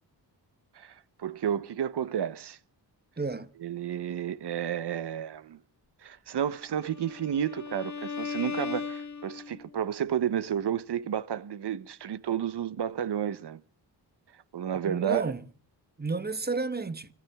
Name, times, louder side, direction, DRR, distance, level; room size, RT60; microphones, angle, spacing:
voice 1, 1.2-2.6 3.6-5.6 6.0-13.6 14.5-15.3, right 9 dB, 65° right, 1.0 m, -31 dB
voice 2, 3.2-3.5 14.8-15.4 16.0-17.1, right 3 dB, 20° right, 1.2 m, -31 dB
Bowed string instrument, 6.7-9.8, left 5 dB, 40° left, 1.8 m, -37 dB
27.0 x 14.0 x 3.6 m
cardioid pair, 80°, 43 cm